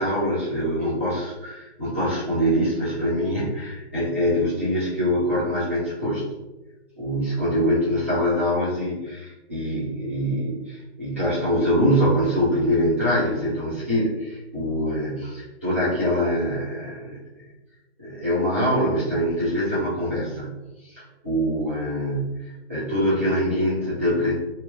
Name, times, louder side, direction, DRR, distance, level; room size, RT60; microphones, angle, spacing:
voice 1, 0.0-6.3 7.0-17.2 18.0-20.6 20.9-24.3, equal, 10° right, -13 dB, 0.5 m, -24 dB
2.9 x 2.5 x 2.6 m, 1.1 s
hypercardioid pair, 165°, 35 cm